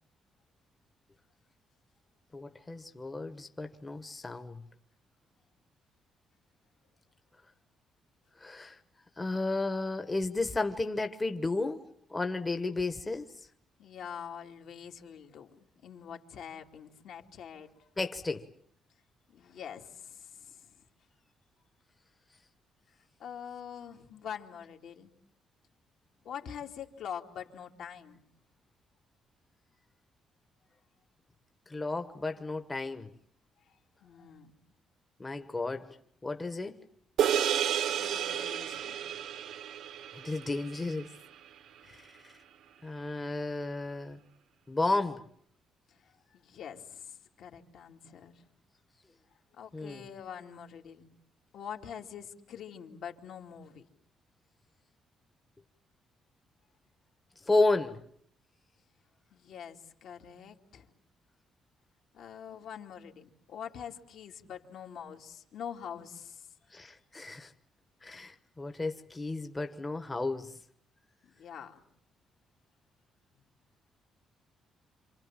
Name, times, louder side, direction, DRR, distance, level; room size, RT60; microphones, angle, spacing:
voice 1, 2.3-4.6 8.4-8.8 9.2-11.8 12.1-13.3 18.0-18.5 31.7-33.1 35.2-36.0 36.2-36.8 40.1-41.1 41.8-42.0 42.2-42.3 42.8-44.2 44.7-45.2 49.7-50.0 57.5-58.0 66.7-67.5 68.0-70.5, left 2 dB, 15° left, 1.1 m, -32 dB
voice 2, 13.8-17.7 19.3-20.8 23.2-25.1 26.2-28.2 33.7-34.5 37.9-39.2 41.8-42.0 45.9-48.5 49.6-51.1 51.5-53.9 59.3-60.9 62.1-66.5 71.2-71.8, left 8 dB, 70° left, 2.5 m, -45 dB
sound 1, 37.2-41.8, right 10 dB, 75° right, 1.4 m, -32 dB
28.0 x 27.5 x 7.4 m
cardioid pair, 150°, 0 cm